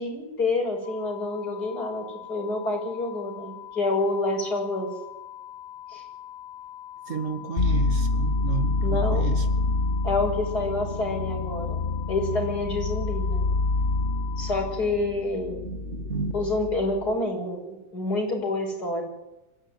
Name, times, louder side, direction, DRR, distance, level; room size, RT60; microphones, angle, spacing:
voice 1, 0.0-4.9 5.9-6.0 8.8-9.3 10.0-11.8 12.1-13.4 14.4-15.6 16.3-19.0, left 2 dB, 85° left, 1 dB, 7.2 m, -28 dB
sound 1, 0.8-14.8, left 12 dB, 70° right, 3.6 m, -43 dB
voice 2, 7.1-9.4 15.6-16.3, right 4 dB, 50° right, 7 dB, 2.4 m, -31 dB
sound 2, 7.6-17.1, left 3 dB, 45° left, 1.1 m, -27 dB
25.0 x 14.5 x 9.9 m, 0.96 s
omnidirectional pair, 1.7 m